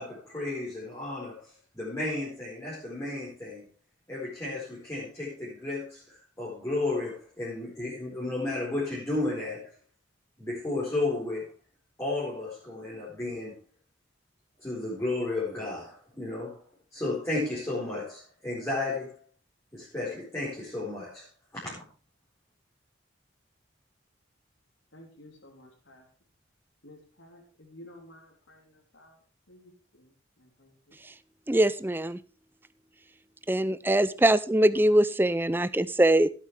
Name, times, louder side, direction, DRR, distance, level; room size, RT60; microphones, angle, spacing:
voice 1, 0.0-3.7 4.1-9.6 10.4-11.5 12.0-13.6 14.6-16.6 16.9-19.1 19.7-21.3 21.5-21.7, left 2 dB, 15° left, -7 dB, 4.5 m, -33 dB
voice 2, 24.9-26.0 26.8-29.2 29.5-31.0, left 1 dB, 75° left, 2 dB, 3.2 m, -53 dB
voice 3, 31.5-32.2 33.5-36.3, right 1 dB, 10° right, 15 dB, 0.4 m, -22 dB
17.5 x 8.6 x 3.3 m, 0.38 s
head